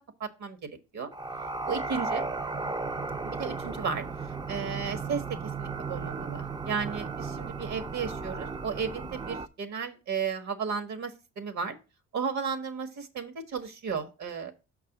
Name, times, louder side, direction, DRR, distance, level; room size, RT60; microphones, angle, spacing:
voice 1, 0.2-1.1 1.7-2.2 3.2-4.0 4.5-11.8 12.1-14.5, right 6 dB, 65° right, 8 dB, 1.5 m, -34 dB
sound 1, 1.1-9.5, right 4 dB, 15° right, 0.5 m, -35 dB
6.5 x 4.7 x 6.0 m, 0.31 s
cardioid pair, 90°, 30 cm